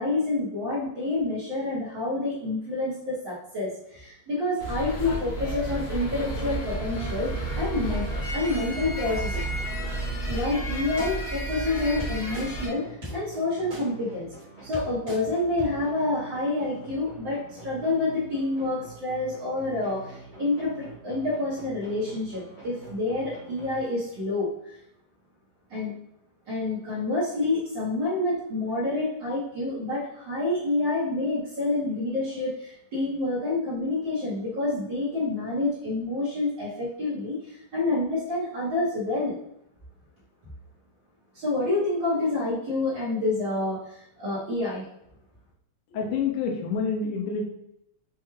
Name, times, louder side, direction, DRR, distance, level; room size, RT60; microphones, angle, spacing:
voice 1, 0.0-8.0 8.3-9.4 10.3-14.3 14.6-24.7 25.7-25.9 26.5-39.3 41.3-44.8, left 2 dB, 75° right, -8 dB, 1.0 m, -28 dB
sound 1, 4.6-12.7, right 1 dB, 55° left, 1.2 m, -31 dB
sound 2, 7.8-24.3, right 3 dB, 30° left, 0.6 m, -47 dB
sound 3, 10.3-10.4 11.0-11.1 12.0-12.5 13.0-13.1 13.7-13.8 14.4-14.5 14.7-15.2 15.6-15.7, equal, 35° right, 1.1 m, -36 dB
voice 2, 45.9-47.4, left 5 dB, 80° left, 1 dB, 2.2 m, -27 dB
6.1 x 2.3 x 3.1 m, 0.79 s
omnidirectional pair, 3.6 m